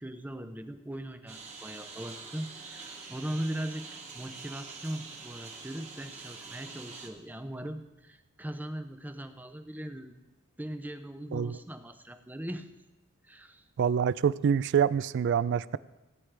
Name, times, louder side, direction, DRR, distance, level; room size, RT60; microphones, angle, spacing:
voice 1, 0.0-3.9 4.1-10.1 10.6-12.7 13.2-13.7, right 1 dB, 10° right, 8 dB, 0.5 m, -39 dB
Engine, 1.3-7.1, right 4 dB, 35° right, 1.6 m, -45 dB
voice 2, 13.8-15.8, right 7 dB, 55° right, 18 dB, 0.3 m, -26 dB
17.5 x 9.6 x 3.3 m, 1.0 s
head